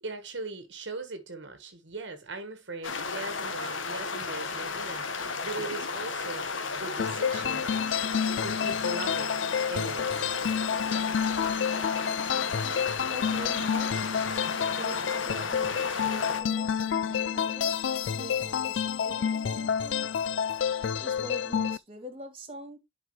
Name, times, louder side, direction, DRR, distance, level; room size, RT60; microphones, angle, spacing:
voice 1, 0.0-6.5 6.7-7.7 8.4-9.4 9.7-10.4, right 3 dB, 65° right, 1.3 m, -39 dB
sound 1, 2.8-16.4, left 4 dB, 85° left, 1.3 m, -34 dB
sound 2, 7.0-21.8, left 7 dB, 65° left, 0.4 m, -29 dB
voice 2, 13.1-13.9 14.8-17.8 18.1-20.1 20.9-22.8, equal, 30° right, 2.4 m, -44 dB
11.0 x 4.9 x 3.0 m
head